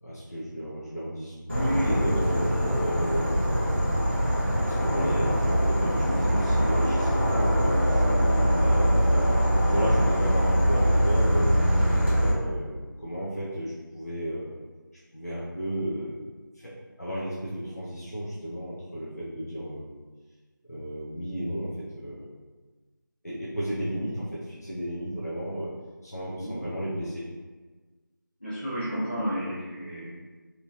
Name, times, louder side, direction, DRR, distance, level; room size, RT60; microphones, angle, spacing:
voice 1, 0.0-3.7 4.3-8.0 8.6-11.5 12.0-14.5 15.1-16.2 16.5-16.7 17.0-19.8 20.7-22.3 23.2-25.7 26.0-27.2, equal, 50° left, -9 dB, 0.6 m, -33 dB
Insect / Frog, 1.5-12.3, equal, 30° right, 0.6 m, -23 dB
voice 2, 28.4-30.1, equal, 30° left, -12 dB, 1.2 m, -32 dB
2.9 x 2.8 x 2.4 m, 1.4 s
figure-of-eight pair, 175°, 11 cm